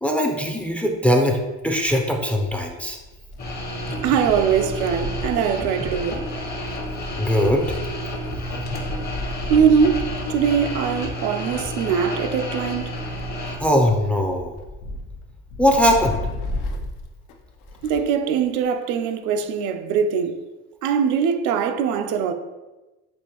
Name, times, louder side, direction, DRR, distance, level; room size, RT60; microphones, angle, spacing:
voice 1, 0.0-3.0 7.2-7.8 13.6-14.5 15.6-16.2, equal, 5° left, 0.4 m, -20 dB
Wind, 1.6-18.2 18.5-18.6 19.6-19.7, left 2 dB, 80° left, 0.6 m, -35 dB
sound 1, 3.4-13.6, equal, 35° left, 0.8 m, -30 dB
voice 2, 4.0-6.2 9.5-12.9 17.8-20.4 20.8-22.3, right 7 dB, 85° right, 0.5 m, -22 dB
6.3 x 2.5 x 2.9 m
cardioid pair, 125°, 29 cm